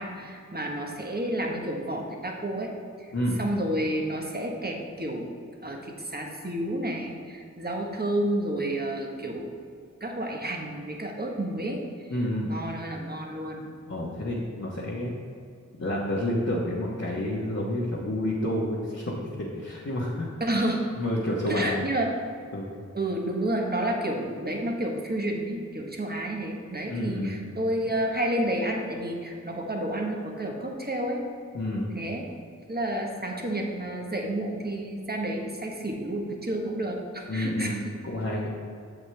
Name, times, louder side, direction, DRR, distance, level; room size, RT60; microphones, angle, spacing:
voice 1, 0.0-2.7 3.0-3.1 3.4-5.4 5.6-9.6 10.0-12.1 12.4-13.7 20.4-20.8 21.5-22.1 22.9-31.2 31.9-32.2 32.7-37.8, right 1 dB, 30° right, 0 dB, 1.3 m, -30 dB
voice 2, 12.1-12.5 13.9-15.2 15.8-20.4 21.0-21.8 22.5-22.7 26.9-27.3 31.5-32.0 37.3-38.5, left 1 dB, 55° left, -5 dB, 1.3 m, -29 dB
8.1 x 7.6 x 3.4 m, 2.4 s
wide cardioid pair, 40°, 30 cm